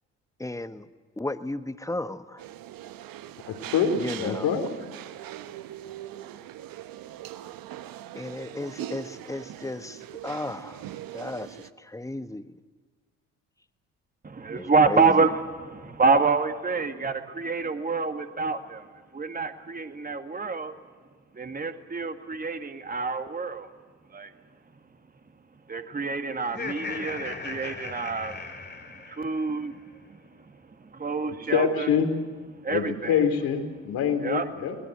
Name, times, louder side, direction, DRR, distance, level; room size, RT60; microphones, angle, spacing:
voice 1, 0.4-0.9 1.2-2.4 4.0-4.5 8.1-10.8 11.1-12.5 14.5-15.1, left 2 dB, 10° left, 11 dB, 1.3 m, -34 dB
sound 1, 2.4-11.7, right 12 dB, 65° right, 1.1 m, -41 dB
voice 2, 3.5-4.7 31.3-32.1 32.7-34.8, left 7 dB, 70° left, 4 dB, 3.6 m, -25 dB
voice 3, 14.2-18.9 19.1-20.7 21.3-23.7 24.1-24.3 25.7-28.5 28.9-31.9 32.6-33.2 34.2-34.5, right 4 dB, 20° right, 7 dB, 1.9 m, -27 dB
Laughter, 26.4-29.6, left 4 dB, 25° left, 2.3 m, -37 dB
23.0 x 19.5 x 8.0 m, 1.5 s
hypercardioid pair, 50°, 38 cm